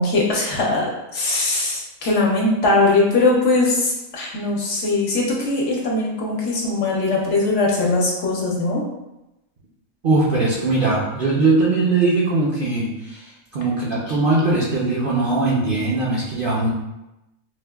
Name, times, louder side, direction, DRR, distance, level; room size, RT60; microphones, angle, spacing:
voice 1, 0.0-8.8 14.1-14.2, left 2 dB, 65° left, -2 dB, 1.0 m, -20 dB
voice 2, 10.0-16.7, right 3 dB, 55° right, -6 dB, 0.6 m, -20 dB
4.3 x 2.1 x 2.2 m, 0.94 s
omnidirectional pair, 1.4 m